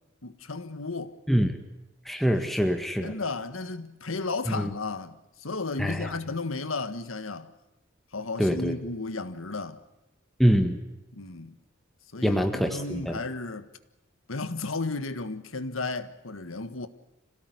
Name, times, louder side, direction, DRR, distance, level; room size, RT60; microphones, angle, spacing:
voice 1, 0.2-1.2 2.4-2.5 3.0-7.5 8.1-9.8 11.1-11.6 12.1-13.7 14.3-16.9, left 3 dB, 85° left, 1.6 m, -34 dB
voice 2, 2.0-3.1 4.5-4.7 5.8-6.1 8.4-8.7 10.4-10.8 12.2-13.2, equal, ahead, 1.6 m, -24 dB
26.5 x 18.0 x 9.6 m
head